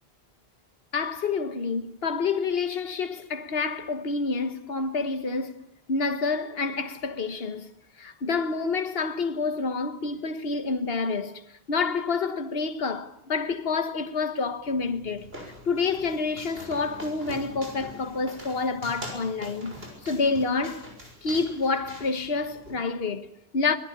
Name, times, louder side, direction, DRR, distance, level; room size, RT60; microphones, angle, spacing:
voice 1, 0.9-5.6 5.9-7.7 8.0-15.3 15.7-19.8 20.0-20.9 21.2-23.8, left 4 dB, 65° left, 1.6 m, -28 dB
sound 1, 14.6-22.8, equal, 65° right, 6.6 m, -44 dB
25.0 x 20.0 x 8.8 m
omnidirectional pair, 1.1 m